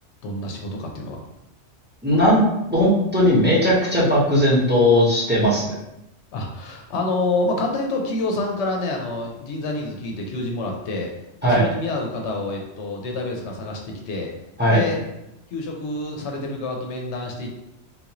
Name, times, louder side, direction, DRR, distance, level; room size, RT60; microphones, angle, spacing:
voice 1, 0.2-1.2 6.3-11.1 11.4-14.3 14.7-15.0 15.5-17.5, left 2 dB, 80° left, 1 dB, 0.9 m, -27 dB
voice 2, 2.0-2.4 2.7-5.7 11.4-11.6 14.6-14.8, equal, 10° right, -7 dB, 0.9 m, -17 dB
3.7 x 2.5 x 2.9 m, 0.88 s
omnidirectional pair, 1.2 m